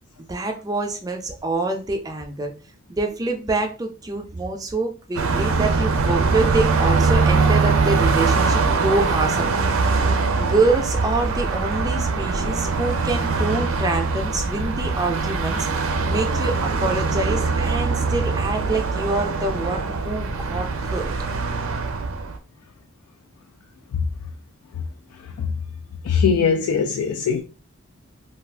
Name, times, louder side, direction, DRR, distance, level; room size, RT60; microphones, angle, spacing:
voice 1, 0.3-2.5 2.9-9.6 10.4-21.0, right 2 dB, 15° right, 0.4 m, -26 dB
Car passing by, 5.2-22.4, right 4 dB, 70° right, 0.5 m, -22 dB
voice 2, 26.1-27.4, left 6 dB, 90° left, 0.3 m, -20 dB
2.4 x 2.4 x 3.3 m
head